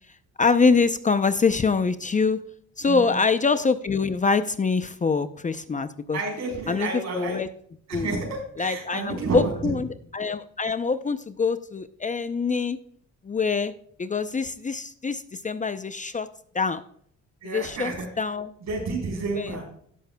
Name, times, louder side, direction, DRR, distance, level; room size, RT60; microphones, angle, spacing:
voice 1, 0.4-2.4 2.8-6.2 6.7-7.5 7.9-8.1 8.6-9.9 10.1-12.8 13.2-13.7 14.0-16.3 16.5-16.8 17.4-18.5 19.4-19.5, left 4 dB, 25° left, 11 dB, 0.6 m, -24 dB
voice 2, 2.8-3.2 6.1-7.4 7.9-8.2 8.6-9.8 17.4-18.1 18.6-19.6, right 3 dB, 65° right, 0 dB, 4.1 m, -30 dB
17.0 x 6.9 x 2.2 m, 0.64 s
cardioid pair, 90°, 30 cm